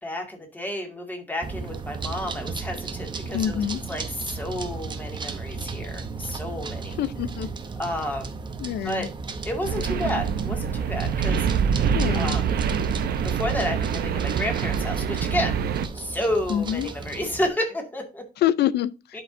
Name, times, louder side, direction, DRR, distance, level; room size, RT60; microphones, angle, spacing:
voice 1, 0.0-3.6 3.9-7.0 7.8-8.3 8.8-9.1 9.5-11.5 12.1-12.5 13.2-15.6 15.9-18.3 19.1-19.2, left 1 dB, 10° left, 2.1 m, -30 dB
sound 1, 1.4-17.5, right 4 dB, 30° right, 0.8 m, -35 dB
voice 2, 3.3-3.8 7.0-7.5 8.6-9.1 11.9-12.4 16.5-16.9 18.4-19.2, left 11 dB, 90° left, 0.6 m, -26 dB
sound 2, 9.6-15.9, right 7 dB, 75° right, 0.8 m, -25 dB
11.5 x 4.9 x 2.6 m
cardioid pair, 160°, 16 cm